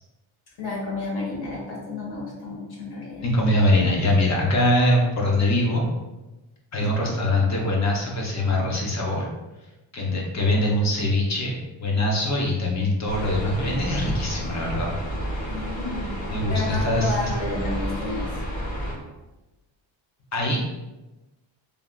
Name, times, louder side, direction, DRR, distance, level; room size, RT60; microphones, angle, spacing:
voice 1, 0.6-3.3 6.8-7.1 15.5-16.2 16.5-18.4, left 2 dB, 55° left, -3 dB, 1.1 m, -31 dB
voice 2, 3.2-5.8 6.7-9.2 9.9-11.5 11.8-14.9 16.3-17.2 20.3-20.6, left 1 dB, 35° left, -1 dB, 0.6 m, -22 dB
sound 1, 13.1-18.9, right 1 dB, 80° left, 1.1 m, -30 dB
3.4 x 2.3 x 2.2 m, 1.1 s
cardioid pair, 150°, 46 cm